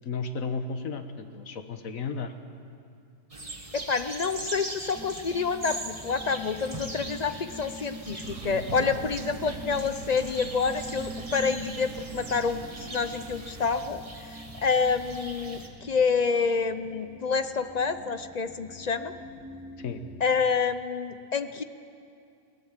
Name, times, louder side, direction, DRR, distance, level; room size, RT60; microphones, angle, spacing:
voice 1, 0.0-2.3 19.8-20.0, left 4 dB, 75° left, 8 dB, 1.6 m, -33 dB
sound 1, 3.3-15.7, right 2 dB, 25° right, 1.7 m, -41 dB
voice 2, 3.7-19.1 20.2-21.6, left 5 dB, 45° left, 11 dB, 0.5 m, -28 dB
sound 2, 4.9-20.3, left 1 dB, ahead, 1.1 m, -45 dB
Crow, 8.2-13.9, right 7 dB, 65° right, 1.2 m, -42 dB
22.0 x 18.0 x 7.4 m, 2.4 s
omnidirectional pair, 1.4 m